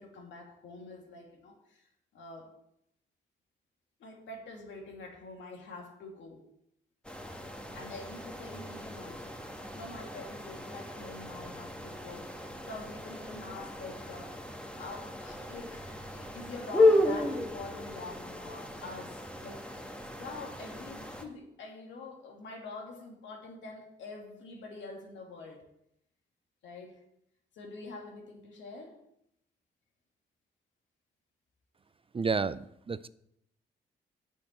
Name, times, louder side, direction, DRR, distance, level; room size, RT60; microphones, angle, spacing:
voice 1, 0.0-1.8 2.1-2.5 4.0-6.4 7.7-9.4 9.7-12.3 12.6-14.4 14.8-19.7 20.2-25.6 26.6-27.0 27.5-29.0, left 3 dB, 70° left, 2 dB, 2.6 m, -45 dB
sound 1, 7.0-21.2, left 2 dB, 5° left, 2.0 m, -33 dB
voice 2, 32.1-33.1, right 5 dB, 30° right, 15 dB, 0.5 m, -31 dB
8.5 x 6.4 x 7.5 m, 0.77 s
supercardioid pair, 50°, 20 cm